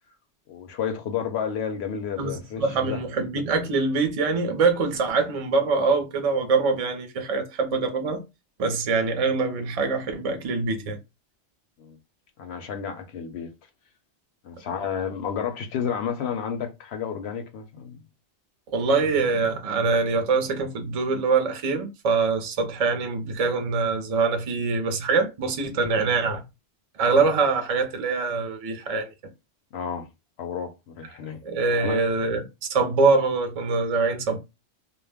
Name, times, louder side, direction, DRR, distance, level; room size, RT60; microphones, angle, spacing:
voice 1, 0.5-3.0 11.8-12.0 12.4-13.5 14.4-18.0 29.7-30.1 30.4-31.4 31.8-32.0, left 7 dB, 70° left, 0.8 m, -31 dB
voice 2, 2.2-8.2 8.6-11.0 18.7-26.4 27.0-29.1 31.4-32.4 32.7-34.4, right 4 dB, 45° right, 0.5 m, -24 dB
2.3 x 2.0 x 3.3 m
omnidirectional pair, 1.2 m